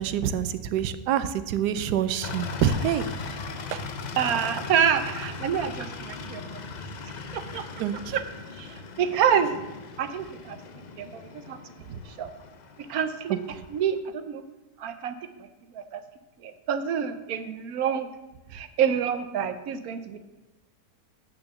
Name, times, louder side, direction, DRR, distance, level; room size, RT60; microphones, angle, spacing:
voice 1, 0.0-3.1 3.7-3.8 7.8-8.2 11.9-12.0, right 9 dB, 90° right, 13 dB, 1.2 m, -27 dB
sound 1, 2.2-14.0, left 4 dB, 80° left, 0.4 m, -38 dB
voice 2, 4.2-6.4 7.3-7.6 8.1-8.2 8.6-8.7 9.0-9.5 10.0-10.6 11.0-11.6 12.2-12.3 12.9-13.4 13.7-13.9 14.3-14.4 14.8-15.1 15.7-16.0 16.4-18.1 18.5-20.2, right 8 dB, 70° right, 10 dB, 1.1 m, -27 dB
8.7 x 5.9 x 7.0 m, 1.1 s
omnidirectional pair, 1.7 m